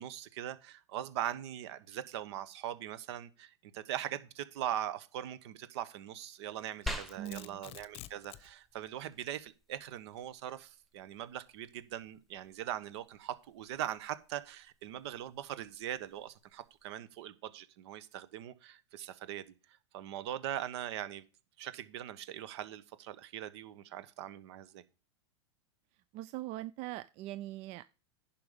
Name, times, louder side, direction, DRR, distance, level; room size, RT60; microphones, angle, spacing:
voice 1, 0.0-21.3 21.6-24.8, right 11 dB, 65° right, 1.2 m, -41 dB
Domestic sounds home sounds, 6.6-8.5, left 14 dB, 40° left, 0.8 m, -50 dB
sound 1, 6.9-16.9, left 1 dB, ahead, 1.4 m, -49 dB
voice 2, 7.2-7.6 26.1-27.8, right 15 dB, 40° right, 0.4 m, -41 dB
10.5 x 5.9 x 5.1 m
hypercardioid pair, 105°, 16 cm